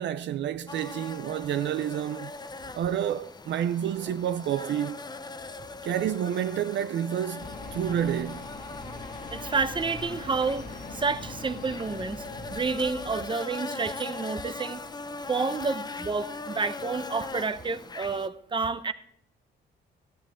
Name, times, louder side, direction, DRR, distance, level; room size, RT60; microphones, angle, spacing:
voice 1, 0.0-2.3 2.7-5.0 5.8-8.4, right 10 dB, 65° right, 0.5 m, -29 dB
sound 1, 0.7-18.3, left 3 dB, 20° left, 0.7 m, -40 dB
sound 2, 7.4-13.2, left 2 dB, 50° left, 2.0 m, -42 dB
voice 2, 9.3-12.2 12.5-14.8 15.3-18.9, right 4 dB, 25° right, 0.9 m, -29 dB
13.5 x 10.5 x 3.7 m
cardioid pair, 90°, 20 cm